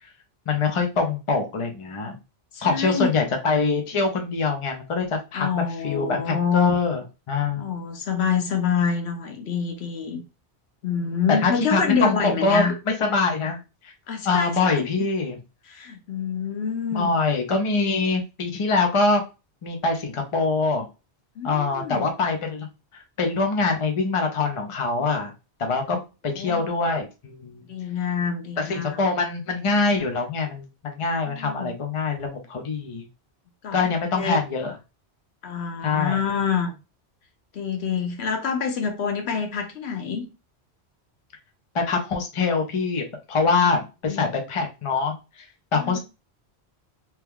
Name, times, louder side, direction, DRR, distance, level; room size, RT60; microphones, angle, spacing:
voice 1, 0.5-2.2 2.6-7.7 11.4-13.9 14.2-15.4 16.9-19.2 19.6-20.9 21.4-22.7 22.9-25.3 25.6-26.0 26.2-27.7 28.6-33.1 33.7-34.7 35.8-36.2 41.7-45.5 45.7-46.0, left 4 dB, 35° left, 0.6 m, -24 dB
voice 2, 2.5-3.1 5.3-6.7 7.6-10.2 10.8-12.7 14.1-14.9 15.7-17.1 21.4-22.1 25.9-26.0 26.3-26.7 27.6-29.0 31.3-31.7 33.6-33.8 34.2-34.4 35.4-36.8 37.5-40.3 43.6-43.7 44.1-44.3 45.7-46.0, left 6 dB, 80° left, 1.0 m, -26 dB
3.0 x 2.3 x 3.5 m
omnidirectional pair, 1.1 m